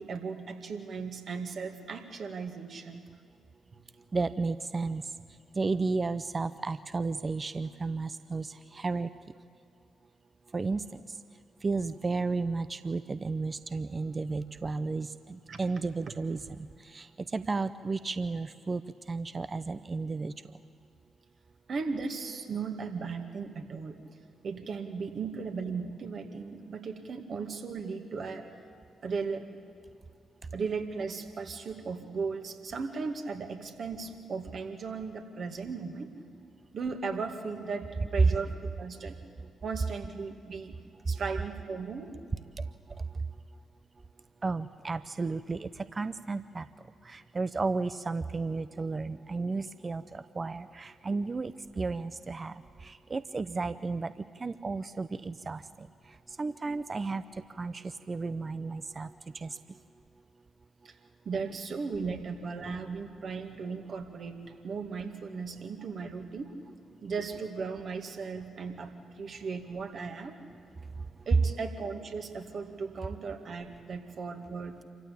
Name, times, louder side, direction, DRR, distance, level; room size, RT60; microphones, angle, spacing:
voice 1, 0.0-3.0 15.5-15.6 21.7-24.0 24.4-28.4 29.0-29.4 30.5-36.1 36.7-39.2 39.6-40.8 41.1-42.1 51.9-52.0 52.4-52.5 60.8-60.9 61.3-64.4 64.6-66.5 67.0-70.4 71.3-74.8, right 5 dB, 55° right, 4 dB, 2.3 m, -36 dB
voice 2, 4.1-5.0 5.5-9.1 10.5-10.8 11.6-16.4 16.9-18.8 19.1-20.3 42.6-42.7 44.4-46.6 47.1-54.1 54.4-55.9 56.4-59.6, right 3 dB, 35° right, 13 dB, 0.7 m, -33 dB
27.0 x 15.0 x 8.7 m, 2.4 s
hypercardioid pair, 45°, 0 cm